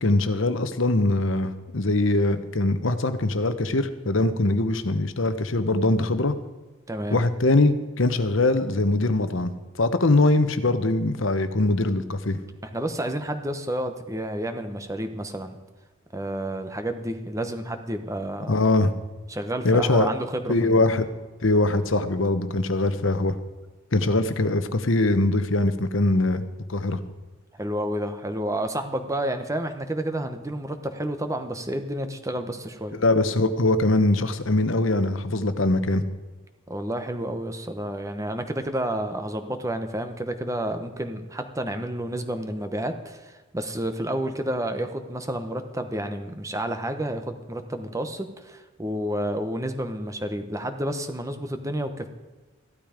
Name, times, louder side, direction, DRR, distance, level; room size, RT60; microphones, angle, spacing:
voice 1, 0.0-6.3 7.1-12.4 18.5-18.9 19.6-20.1 20.5-21.0 21.4-23.4 23.9-26.4 26.7-27.0 32.9-36.0, left 2 dB, 65° left, 10 dB, 1.0 m, -22 dB
voice 2, 6.9-7.2 12.6-15.6 16.1-18.6 19.3-21.0 27.6-33.0 36.7-52.1, right 1 dB, 15° right, 7 dB, 1.0 m, -30 dB
15.0 x 12.0 x 5.1 m, 1.2 s
head